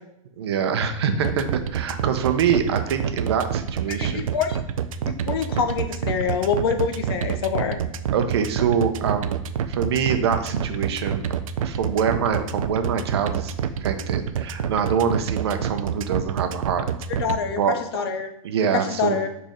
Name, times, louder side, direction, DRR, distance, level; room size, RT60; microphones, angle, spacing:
voice 1, 0.4-4.3 8.1-9.4 9.7-11.2 11.6-16.9 17.6-17.7 18.4-19.2, right 7 dB, 50° right, 7 dB, 0.8 m, -24 dB
sound 1, 1.2-17.4, right 9 dB, 75° right, 0.5 m, -27 dB
voice 2, 4.0-4.6 5.0-7.8 17.2-17.6 17.9-18.3 18.7-19.3, left 6 dB, 45° left, 7 dB, 0.8 m, -25 dB
5.3 x 4.4 x 5.1 m, 0.81 s
supercardioid pair, 175°, 18 cm